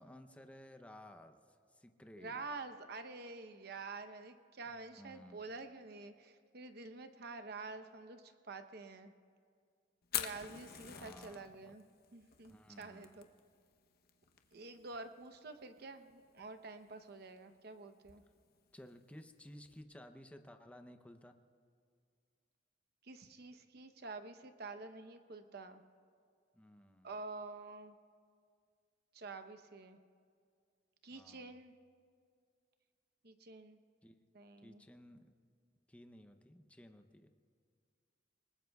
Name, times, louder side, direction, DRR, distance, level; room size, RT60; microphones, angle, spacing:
voice 1, 0.0-2.5 4.9-5.4 10.9-11.7 12.5-13.2 18.7-21.4 26.5-27.1 31.1-31.5 34.0-34.2 34.6-35.3 35.9-37.3, left 1 dB, 5° left, 7 dB, 0.7 m, -56 dB
voice 2, 2.2-9.1 10.1-11.8 12.1-13.2 14.5-18.2 23.0-25.8 27.0-27.9 29.1-30.0 31.0-31.7 33.2-33.8 34.3-34.8, right 3 dB, 60° right, 9 dB, 0.9 m, -48 dB
Fire, 10.0-19.8, left 10 dB, 55° left, 0.9 m, -48 dB
29.0 x 19.5 x 2.3 m, 2.2 s
head